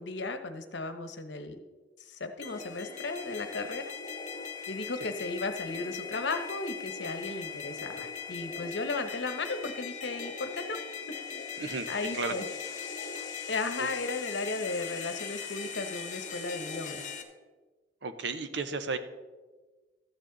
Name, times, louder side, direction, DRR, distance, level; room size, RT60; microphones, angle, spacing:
voice 1, 0.0-1.6 2.0-3.8 4.7-10.8 11.9-12.4 13.5-17.0, left 3 dB, 70° left, 8 dB, 1.0 m, -35 dB
sound 1, 2.4-17.2, left 6 dB, 45° left, 1.3 m, -40 dB
voice 2, 11.6-11.9 12.1-12.3 13.8-13.9 18.0-19.0, right 4 dB, 70° right, 10 dB, 0.9 m, -33 dB
13.5 x 9.1 x 4.0 m, 1.3 s
head